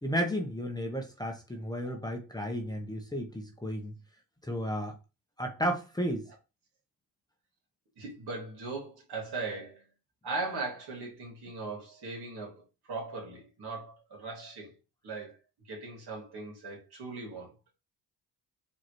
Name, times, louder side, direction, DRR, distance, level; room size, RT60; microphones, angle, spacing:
voice 1, 0.0-3.9 4.4-4.9 5.4-6.2, equal, 10° left, 0.9 m, -33 dB
voice 2, 8.0-9.8 10.2-12.6 12.9-14.7 15.0-15.4 15.7-17.5, right 3 dB, 60° right, 2.3 m, -39 dB
4.8 x 2.9 x 3.1 m
supercardioid pair, 70°, 42 cm